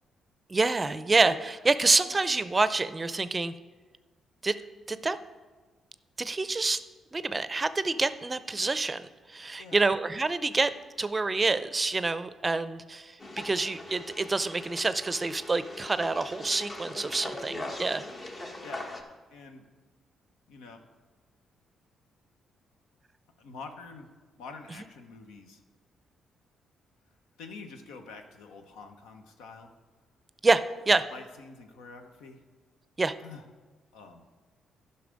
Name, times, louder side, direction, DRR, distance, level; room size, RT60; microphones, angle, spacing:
voice 1, 0.5-3.5 4.4-4.6 4.9-5.2 6.2-6.8 7.1-13.1 13.4-18.0 30.4-31.0 33.0-33.1, right 3 dB, 30° right, 14 dB, 0.5 m, -27 dB
sound 1, 13.2-19.0, left 2 dB, 40° left, 1.4 m, -41 dB
voice 2, 18.6-18.9 19.3-19.6 20.5-20.8 23.4-24.1 24.4-25.6 27.4-29.7 31.1-32.4 33.2-33.4 33.9-34.2, left 4 dB, 85° left, 6 dB, 0.9 m, -46 dB
11.0 x 5.7 x 5.2 m, 1.3 s
supercardioid pair, 60°, 0 cm